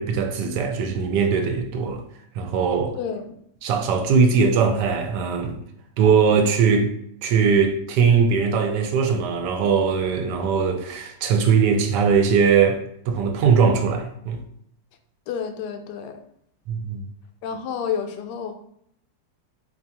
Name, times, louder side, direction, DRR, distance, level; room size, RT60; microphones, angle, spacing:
voice 1, 0.0-2.0 2.4-2.9 3.6-5.6 6.0-6.9 7.2-12.8 13.1-14.4 16.7-17.0, right 6 dB, 75° right, 1.1 m, -20 dB
voice 2, 3.0-3.4 15.3-16.2 17.4-18.5, left 7 dB, 75° left, 1.1 m, -30 dB
4.5 x 2.4 x 2.8 m
omnidirectional pair, 2.0 m